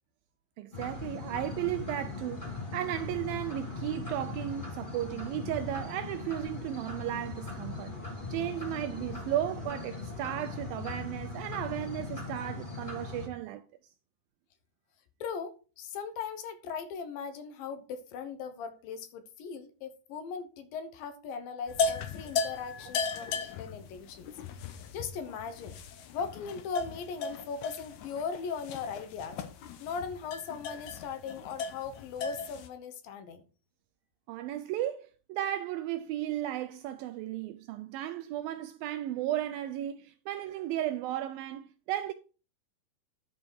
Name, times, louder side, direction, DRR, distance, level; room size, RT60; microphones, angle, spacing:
voice 1, 0.6-8.0 8.3-13.9 34.3-42.1, right 12 dB, 85° right, 2.1 m, -35 dB
sound 1, 0.7-13.3, left 3 dB, 25° left, 1.1 m, -39 dB
voice 2, 15.2-24.3 24.7-25.8 26.1-29.4 29.8-33.4, left 6 dB, 70° left, 2.4 m, -39 dB
sound 2, 21.7-32.7, left 5 dB, 90° left, 1.7 m, -36 dB
11.0 x 5.3 x 4.6 m
omnidirectional pair, 4.7 m